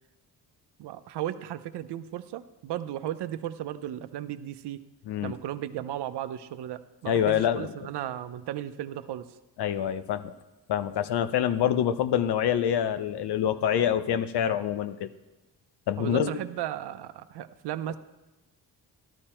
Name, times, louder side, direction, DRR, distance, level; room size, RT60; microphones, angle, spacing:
voice 1, 0.8-4.8 5.2-9.3 15.9-18.0, right 12 dB, 75° right, 11 dB, 0.8 m, -35 dB
voice 2, 7.1-7.7 9.6-10.3 10.7-15.1 15.9-16.3, left 9 dB, 75° left, 12 dB, 0.8 m, -26 dB
13.5 x 12.0 x 4.4 m, 1.1 s
cardioid pair, 100°, 41 cm